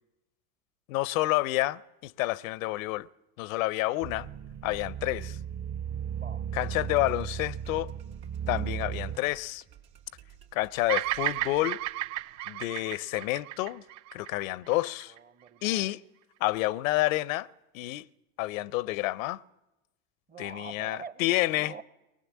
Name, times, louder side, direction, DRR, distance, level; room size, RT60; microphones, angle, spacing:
voice 1, 0.9-3.1 3.4-4.3 4.6-5.4 6.5-7.9 8.5-9.6 10.5-11.8 12.5-13.8 14.1-15.1 15.6-16.0 16.4-17.5 17.7-18.1 18.4-19.4 20.4-21.7, left 18 dB, 75° left, 0.6 m, -29 dB
sound 1, 4.0-9.2, right 9 dB, 40° right, 1.1 m, -36 dB
voice 2, 6.1-6.5 15.1-15.9 20.3-21.3 21.5-21.8, right 4 dB, 20° right, 0.7 m, -45 dB
sound 2, 6.6-11.6, right 10 dB, 75° right, 2.8 m, -56 dB
Bird vocalization bird call bird song, 10.9-15.2, right 15 dB, 60° right, 0.6 m, -33 dB
20.5 x 18.5 x 7.3 m
supercardioid pair, 100°, 40 cm